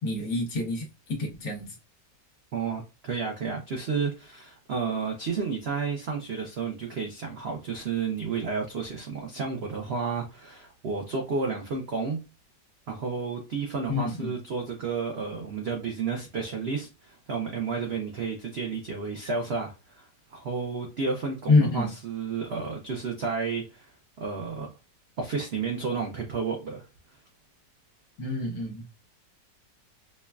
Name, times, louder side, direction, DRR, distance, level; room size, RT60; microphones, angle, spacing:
voice 1, 0.0-1.7 13.9-14.3 21.5-21.9 28.2-28.8, left 3 dB, 60° left, 1.4 m, -26 dB
voice 2, 2.5-12.2 12.9-23.9 24.2-24.7 25.2-26.8, right 5 dB, 80° right, 0.5 m, -31 dB
5.3 x 2.2 x 2.3 m
omnidirectional pair, 1.9 m